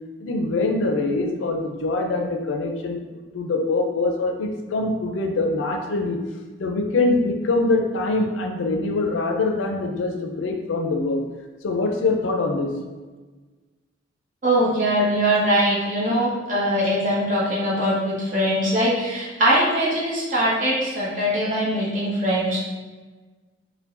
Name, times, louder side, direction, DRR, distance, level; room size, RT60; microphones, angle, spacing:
voice 1, 0.2-6.2 6.6-11.2 11.6-12.7, left 3 dB, 80° left, 4 dB, 0.4 m, -24 dB
voice 2, 14.4-22.6, equal, 40° right, -6 dB, 1.0 m, -22 dB
4.5 x 2.2 x 2.6 m, 1.3 s
head